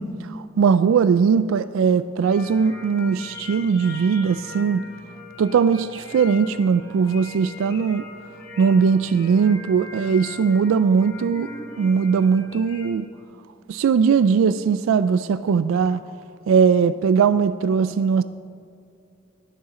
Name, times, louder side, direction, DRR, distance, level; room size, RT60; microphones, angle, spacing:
voice 1, 0.0-4.8 5.4-8.1 8.6-11.5 11.8-13.1 13.7-16.0 16.5-18.2, right 6 dB, 80° right, 14 dB, 0.3 m, -19 dB
sound 1, 2.2-12.9, left 3 dB, 50° left, 2.4 m, -40 dB
21.0 x 7.1 x 3.8 m, 2.5 s
head